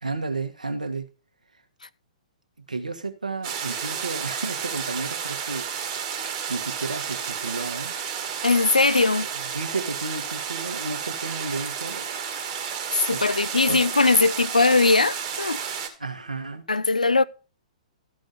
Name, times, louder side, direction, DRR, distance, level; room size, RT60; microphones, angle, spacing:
voice 1, 0.0-1.0 2.7-5.7 6.5-7.9 9.2-9.3 9.5-12.0 12.9-13.8 16.0-16.6, right 3 dB, 80° right, 1.5 m, -32 dB
sound 1, 3.4-15.9, right 7 dB, 35° right, 1.9 m, -31 dB
voice 2, 8.4-9.3 12.9-15.6 16.7-17.2, left 3 dB, 85° left, 0.4 m, -20 dB
13.5 x 5.2 x 5.3 m
figure-of-eight pair, 115°, 4 cm